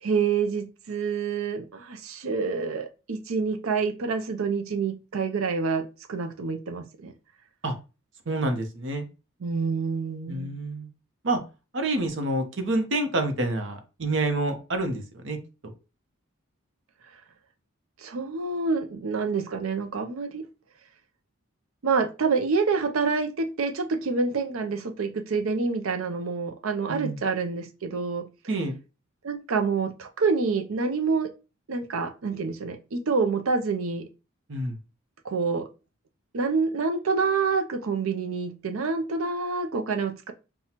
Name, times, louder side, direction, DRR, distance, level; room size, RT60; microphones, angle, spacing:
voice 1, 0.0-7.1 9.4-10.6 18.0-20.4 21.8-28.3 29.2-31.3 31.7-34.1 35.2-35.7 36.3-40.3, right 4 dB, 85° right, 7 dB, 0.5 m, -27 dB
voice 2, 8.3-9.1 10.3-10.9 11.2-11.4 11.7-15.4 15.6-15.7 26.9-27.2 28.5-28.8 34.5-34.8, right 2 dB, 60° right, 6 dB, 0.8 m, -28 dB
5.7 x 2.3 x 2.9 m, 0.30 s
head